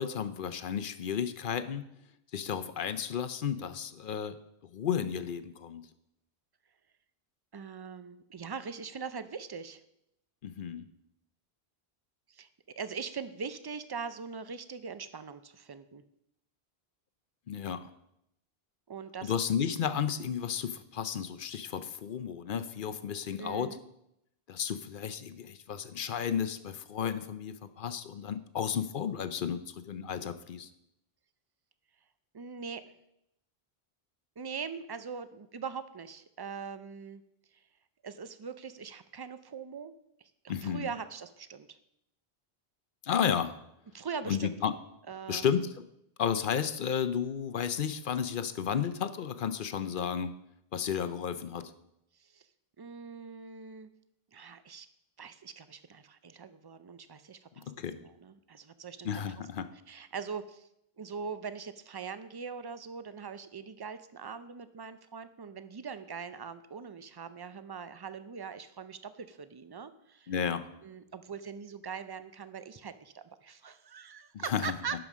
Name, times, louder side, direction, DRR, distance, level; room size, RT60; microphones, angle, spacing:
voice 1, 0.0-1.8 2.3-4.4 4.7-5.8 10.4-10.9 17.5-17.8 19.2-23.8 24.5-30.7 40.5-40.9 43.0-43.6 44.3-44.7 45.3-45.7 46.2-50.4 50.7-51.7 57.7-58.0 59.0-59.7 70.3-70.7 74.3-74.7, left 8 dB, 60° left, 12 dB, 0.7 m, -33 dB
voice 2, 7.5-9.8 12.3-12.5 12.8-16.0 18.9-19.3 23.4-23.8 32.3-32.8 34.4-37.2 37.5-37.6 38.0-39.9 40.2-41.8 43.9-44.6 45.1-45.5 52.1-52.5 52.8-53.9 54.3-54.9 55.2-57.7 58.0-59.2 59.9-60.7 61.0-70.3 70.8-75.0, right 6 dB, 40° right, 12 dB, 0.3 m, -42 dB
11.0 x 5.1 x 6.1 m, 0.80 s
omnidirectional pair, 1.1 m